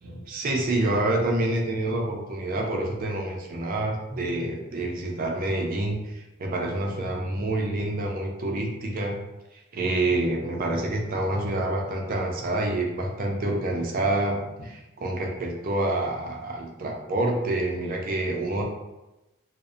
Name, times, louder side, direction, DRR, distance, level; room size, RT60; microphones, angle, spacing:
voice 1, 0.0-6.1 6.4-9.2 9.7-18.6, right 2 dB, 40° right, 0 dB, 0.4 m, -27 dB
2.6 x 2.0 x 2.4 m, 1.0 s
head